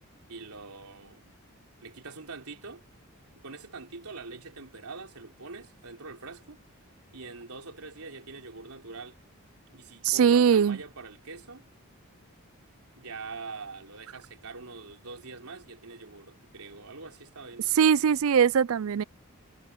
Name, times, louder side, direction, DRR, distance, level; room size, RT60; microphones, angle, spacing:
voice 1, 0.3-1.4 1.8-2.9 3.3-6.6 7.1-9.2 9.7-11.7 13.0-17.8, right 4 dB, 90° right, 3.7 m, -44 dB
voice 2, 10.0-10.8 17.8-19.0, right 7 dB, 70° right, 0.4 m, -21 dB
head